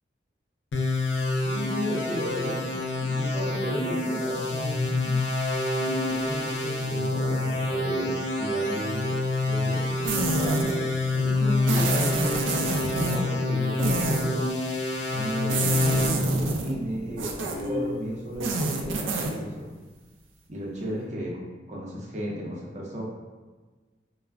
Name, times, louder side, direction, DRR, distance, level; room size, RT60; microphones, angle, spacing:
sound 1, 0.7-16.1, left 2 dB, 80° left, 0.4 m, -27 dB
voice 1, 1.4-2.7 3.0-5.2 5.8-9.1 9.5-14.4 15.1-19.7 20.5-21.3 21.7-23.0, equal, 40° right, -4 dB, 0.5 m, -34 dB
sound 2, 10.0-10.8 11.7-13.2 13.8-14.3 15.5-16.7 17.2-17.7 18.3-19.4, right 3 dB, 90° right, 0.4 m, -28 dB
sound 3, 15.8-18.0, equal, 25° left, 0.8 m, -34 dB
2.3 x 2.0 x 3.3 m, 1.3 s
head